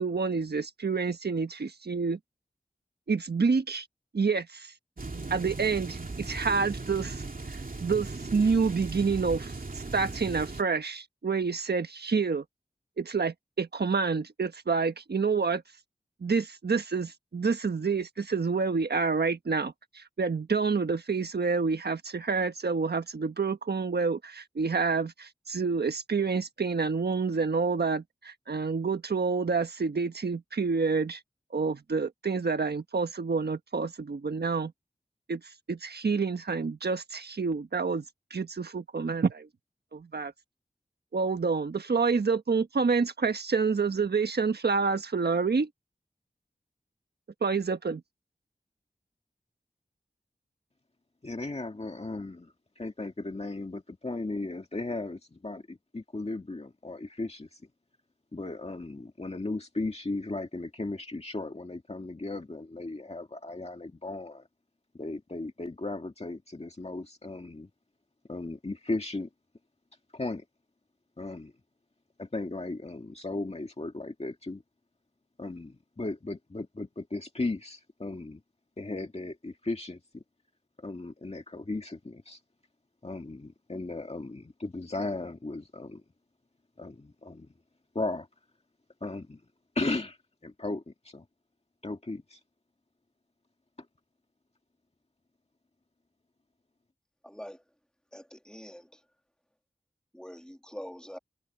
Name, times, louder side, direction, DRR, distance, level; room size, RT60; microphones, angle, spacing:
voice 1, 0.0-2.2 3.1-3.9 4.1-4.7 5.3-7.2 7.8-9.5 9.9-12.4 13.0-15.6 16.2-31.2 31.5-34.7 35.3-35.4 35.7-38.0 38.3-39.5 39.9-40.3 41.1-45.7 47.4-48.0, right 4 dB, 80° right, 1.3 m, -28 dB
sound 1, 5.0-10.6, right 3 dB, 60° right, 2.6 m, -38 dB
voice 2, 51.2-57.6 58.3-64.5 65.0-67.7 68.3-69.3 70.1-70.4 71.2-71.5 72.2-74.6 75.4-78.4 78.8-80.2 80.8-82.4 83.0-86.0 86.8-87.5 87.9-88.3 89.0-89.4 89.8-90.2 90.4-91.3 91.8-92.4, left 2 dB, 40° left, 2.0 m, -36 dB
voice 3, 97.2-97.6 98.1-99.0 100.1-101.2, equal, 5° left, 2.9 m, -44 dB
wide cardioid pair, 55°, 17 cm